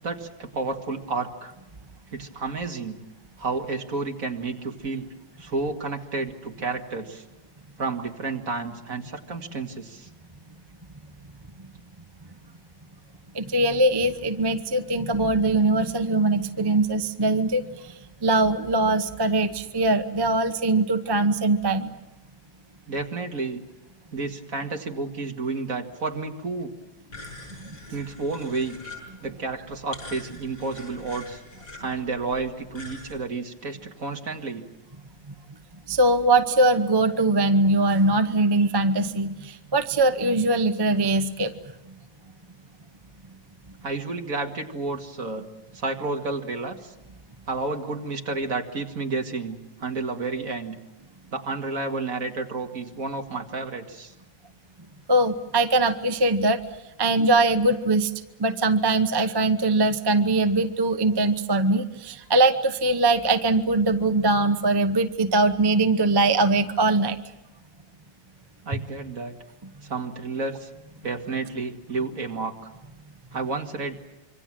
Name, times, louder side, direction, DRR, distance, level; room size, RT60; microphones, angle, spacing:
voice 1, 0.0-1.5 2.1-3.0 3.4-5.1 5.4-7.2 7.8-10.1 22.9-23.6 24.1-26.7 27.9-28.8 29.2-31.4 31.8-34.6 43.8-45.5 45.7-46.9 47.5-50.8 51.3-54.1 68.6-69.3 69.8-70.7 71.0-72.7 73.3-74.0, right 3 dB, 45° right, 3 dB, 2.4 m, -31 dB
voice 2, 13.3-17.9 18.2-21.9 27.6-27.7 35.9-41.5 55.1-56.6 57.0-58.1 58.4-67.2, right 2 dB, 25° right, 8 dB, 0.5 m, -21 dB
sound 1, 27.1-33.1, left 2 dB, 60° left, 7.8 m, -44 dB
26.5 x 24.5 x 7.6 m, 1.0 s
omnidirectional pair, 2.0 m